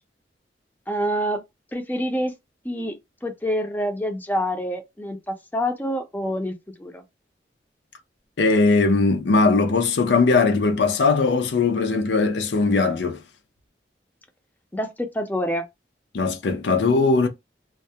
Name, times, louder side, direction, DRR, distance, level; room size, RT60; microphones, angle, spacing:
voice 1, 0.9-1.4 1.7-2.3 2.6-7.0 14.7-15.7, equal, 10° left, 0.4 m, -27 dB
voice 2, 8.4-13.2 16.1-17.3, left 3 dB, 75° left, 0.5 m, -19 dB
2.3 x 2.0 x 2.7 m
head